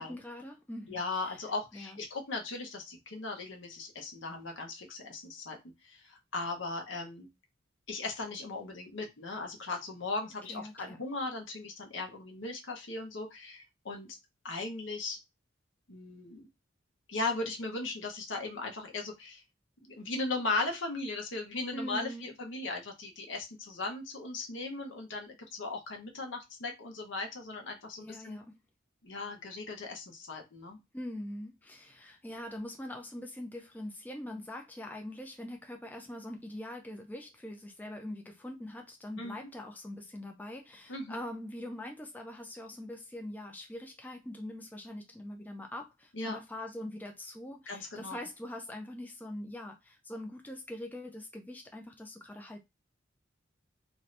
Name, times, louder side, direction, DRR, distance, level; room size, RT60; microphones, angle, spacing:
voice 1, 0.0-1.4 1.7-2.0 10.5-11.1 21.7-22.2 28.0-28.5 30.9-52.6, left 1 dB, 10° left, 0.4 m, -43 dB
voice 2, 0.9-5.6 5.8-7.3 7.9-14.2 14.4-15.2 15.9-16.5 17.1-19.4 19.9-28.4 29.0-30.8 39.2-39.4 40.9-41.2 46.1-46.4 47.7-48.2, left 3 dB, 70° left, 0.9 m, -37 dB
2.7 x 2.6 x 3.2 m
head